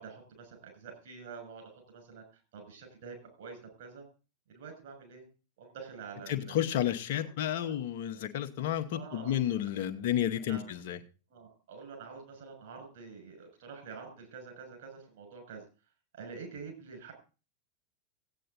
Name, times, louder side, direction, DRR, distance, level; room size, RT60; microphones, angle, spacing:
voice 1, 0.0-2.2 2.5-4.0 4.5-5.2 5.6-6.6 7.5-7.8 8.9-9.4 10.5-10.6 11.3-15.6 16.1-17.1, right 5 dB, 55° right, 2 dB, 6.8 m, -47 dB
voice 2, 6.3-11.0, left 11 dB, 50° left, 7 dB, 1.3 m, -31 dB
15.5 x 9.1 x 4.1 m, 0.33 s
figure-of-eight pair, 90°, 0 cm